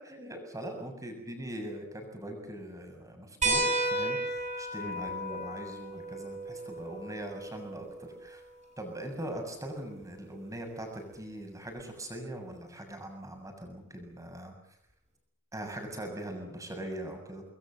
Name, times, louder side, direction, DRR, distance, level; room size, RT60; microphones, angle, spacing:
voice 1, 0.1-7.9 8.2-8.4 8.8-14.5 15.5-17.4, right 1 dB, 15° right, 4 dB, 7.1 m, -41 dB
sound 1, 3.4-8.5 10.0-10.1 11.8-11.9, right 2 dB, 35° right, 5.3 m, -33 dB
27.0 x 21.5 x 7.8 m, 0.74 s
head